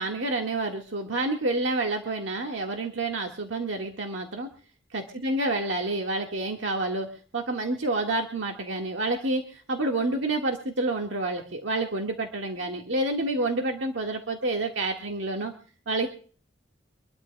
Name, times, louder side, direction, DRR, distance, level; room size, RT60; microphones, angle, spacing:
voice 1, 0.0-4.5 4.9-7.1 7.3-15.5 15.9-16.1, right 2 dB, 80° right, 2 dB, 1.7 m, -28 dB
25.5 x 12.5 x 2.2 m, 0.42 s
head